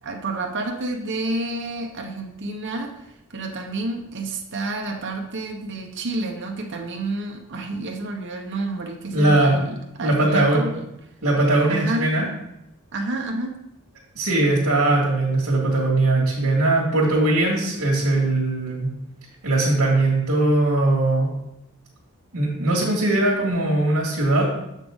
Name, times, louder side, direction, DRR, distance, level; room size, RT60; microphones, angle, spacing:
voice 1, 0.0-2.9 3.3-10.9 11.7-12.0 12.9-13.6, right 2 dB, 55° right, 1 dB, 0.9 m, -29 dB
voice 2, 9.1-9.6 10.0-10.6 11.2-12.2 14.2-18.9 19.4-21.3 22.3-24.5, right 2 dB, 75° right, -6 dB, 1.8 m, -20 dB
7.0 x 5.8 x 3.6 m, 0.83 s
head